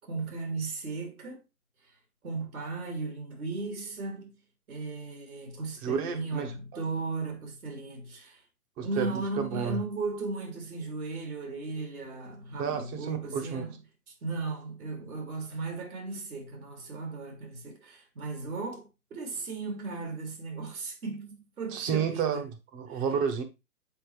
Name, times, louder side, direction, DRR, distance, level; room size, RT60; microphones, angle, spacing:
voice 1, 0.1-1.4 2.2-4.3 4.7-8.4 8.8-13.8 14.1-22.4 22.9-23.0, right 3 dB, 70° right, 2.8 m, -36 dB
voice 2, 5.8-6.5 8.8-9.8 12.6-13.6 21.7-23.4, right 7 dB, 20° right, 0.9 m, -31 dB
7.8 x 4.4 x 3.3 m
hypercardioid pair, 135°, 44 cm